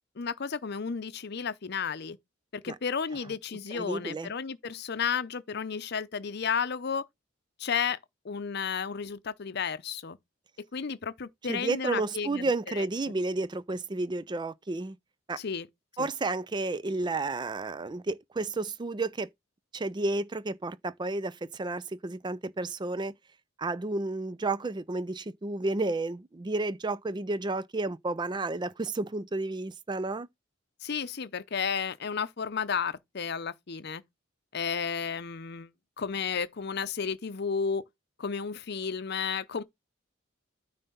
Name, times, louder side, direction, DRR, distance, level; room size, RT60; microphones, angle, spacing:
voice 1, 0.2-2.2 2.5-7.0 7.6-8.0 8.2-10.2 10.7-12.5 12.7-12.9 15.4-15.7 16.0-16.1 30.8-34.0 34.5-35.7 36.0-37.8 38.2-39.6, left 6 dB, 55° left, 0.6 m, -32 dB
voice 2, 3.7-4.3 11.5-15.0 15.3-15.4 16.0-19.3 19.7-23.1 23.6-30.3, right 2 dB, 25° right, 0.4 m, -31 dB
9.3 x 3.4 x 5.4 m
head